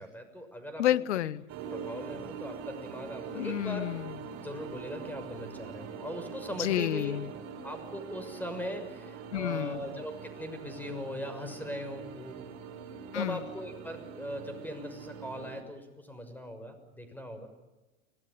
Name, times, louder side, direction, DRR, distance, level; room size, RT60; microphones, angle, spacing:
voice 1, 0.0-0.9 1.7-3.9 4.3-7.1 7.6-12.4 13.1-17.5, equal, 5° left, 8 dB, 6.3 m, -40 dB
voice 2, 0.8-1.4 3.3-4.1 6.6-7.3 9.3-9.8 13.1-13.4, left 13 dB, 75° left, 19 dB, 1.0 m, -30 dB
sound 1, 1.5-15.6, right 6 dB, 45° right, 4.8 m, -43 dB
25.0 x 19.0 x 9.9 m, 1.1 s
hypercardioid pair, 85°, 35 cm